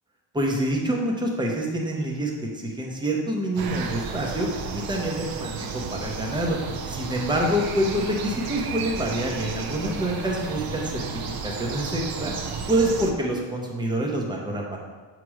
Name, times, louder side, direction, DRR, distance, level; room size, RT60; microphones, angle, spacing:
voice 1, 0.3-6.6 6.9-11.0 11.4-12.3 12.7-14.8, right 1 dB, 10° right, -1 dB, 0.7 m, -26 dB
sound 1, 3.6-13.1, right 5 dB, 50° right, 0.6 m, -33 dB
7.4 x 3.1 x 4.8 m, 1.3 s
cardioid pair, 180°, 45 cm